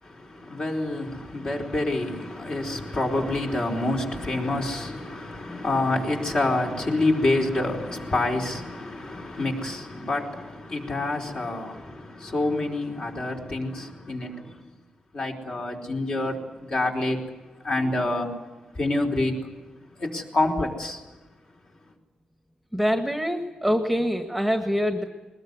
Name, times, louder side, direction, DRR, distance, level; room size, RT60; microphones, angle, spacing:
voice 1, 0.0-14.6 15.1-17.2 17.6-18.3 18.7-19.5 20.0-21.0, left 2 dB, 40° left, 4.4 m, -27 dB
voice 2, 22.7-25.0, equal, ahead, 1.7 m, -25 dB
21.0 x 21.0 x 9.7 m
wide cardioid pair, 125°, 2 cm